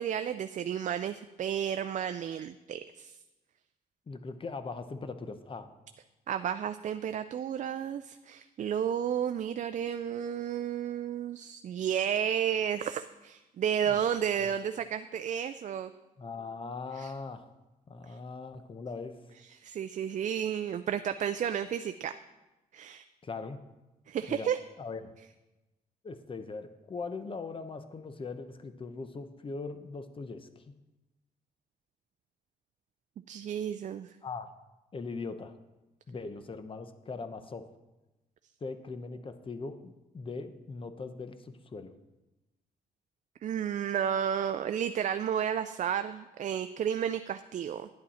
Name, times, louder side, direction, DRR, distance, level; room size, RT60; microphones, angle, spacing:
voice 1, 0.0-3.2 6.3-15.9 16.9-17.1 18.1-18.2 19.5-22.1 22.7-23.1 24.1-24.6 33.3-34.1 43.4-47.9, right 9 dB, 50° right, 10 dB, 0.4 m, -32 dB
voice 2, 4.1-5.7 13.8-14.1 14.4-14.6 16.2-17.4 17.9-19.2 23.2-23.6 24.3-24.5 24.8-25.1 26.0-30.7 34.2-34.5 34.9-35.5 36.1-37.7 38.6-41.9, left 4 dB, 35° left, 10 dB, 0.8 m, -40 dB
10.5 x 8.9 x 4.2 m, 1.0 s
cardioid pair, 85°, 16 cm